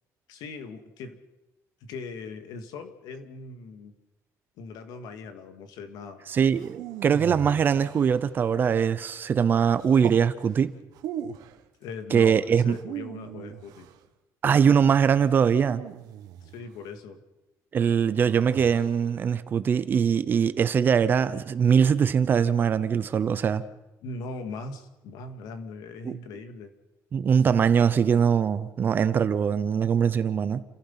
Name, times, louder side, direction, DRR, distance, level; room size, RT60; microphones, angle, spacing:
voice 1, 0.3-1.2 1.8-3.9 4.6-6.2 11.8-13.9 16.4-17.2 24.0-26.7, left 4 dB, 80° left, 2.4 m, -40 dB
voice 2, 6.3-10.7 12.1-12.8 14.4-15.8 17.7-23.7 26.0-26.2 27.1-30.6, right 7 dB, 30° right, 0.8 m, -22 dB
sound 1, 6.5-8.5 9.8-10.3 10.9-11.6 12.7-14.0 15.5-16.7 18.3-19.1, right 10 dB, 75° right, 1.5 m, -39 dB
29.0 x 16.0 x 5.8 m
cardioid pair, 175°, 7 cm